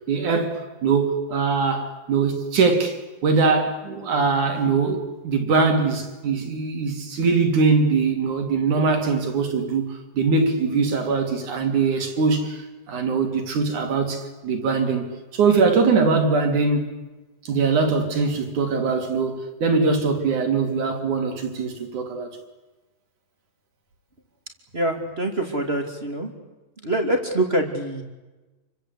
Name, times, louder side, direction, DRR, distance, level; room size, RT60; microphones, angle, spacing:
voice 1, 0.1-16.9 17.5-22.4, right 4 dB, 60° right, 4.5 m, -22 dB
voice 2, 24.7-26.3 26.8-28.0, right 1 dB, 20° right, 2.6 m, -24 dB
29.0 x 24.5 x 8.4 m
omnidirectional pair, 4.1 m